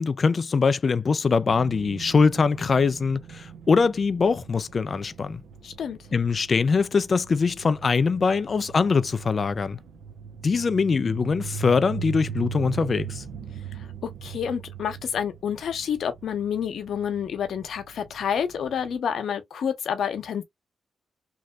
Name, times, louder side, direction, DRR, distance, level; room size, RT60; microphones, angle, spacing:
voice 1, 0.0-5.4 6.1-9.8 10.4-13.2, left 5 dB, 45° left, 0.3 m, -22 dB
sound 1, 1.5-19.0, right 6 dB, 85° right, 0.8 m, -40 dB
voice 2, 5.6-6.0 13.7-20.4, left 8 dB, 75° left, 0.8 m, -29 dB
3.1 x 2.7 x 2.3 m
cardioid pair, 90°, 0 cm